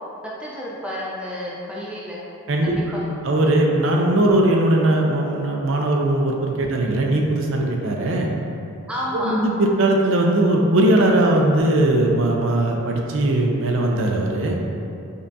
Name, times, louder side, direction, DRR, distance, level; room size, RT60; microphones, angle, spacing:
voice 1, 0.2-2.2 2.6-3.1 8.9-9.4, equal, 5° right, -5 dB, 0.4 m, -30 dB
voice 2, 2.5-3.0 3.2-8.3 9.1-14.6, right 1 dB, 65° right, 0 dB, 0.4 m, -19 dB
5.2 x 2.3 x 2.6 m, 2.6 s
head